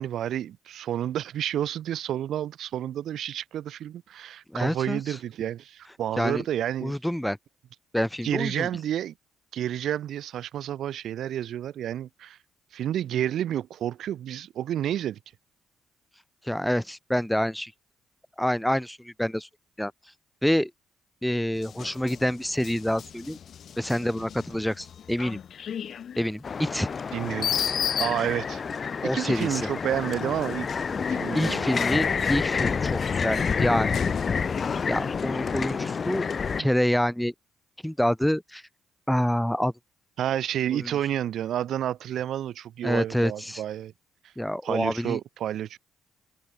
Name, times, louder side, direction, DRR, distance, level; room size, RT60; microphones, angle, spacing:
voice 1, 0.0-6.9 8.2-9.1 9.5-12.4 12.7-15.2 27.1-27.5 28.0-28.6 29.0-30.7 31.1-31.8 40.2-43.9 44.6-45.8, right 11 dB, 70° right, 0.5 m, -30 dB
voice 2, 4.5-5.2 6.2-6.4 6.8-7.4 7.9-8.7 16.4-17.7 18.4-19.5 19.8-19.9 20.4-20.7 21.2-23.4 23.8-25.4 26.2-26.9 29.0-29.7 31.3-34.1 34.9-36.3 36.6-37.3 37.8-38.6 39.1-39.7 40.7-41.0 42.8-43.6 44.4-45.2, equal, 5° left, 1.0 m, -27 dB
sound 1, 21.5-28.7 29.3-32.4 32.9-34.9, left 8 dB, 60° left, 4.1 m, -36 dB
sound 2, 26.4-36.6, left 5 dB, 40° left, 1.9 m, -28 dB
cardioid pair, 90°, 0 cm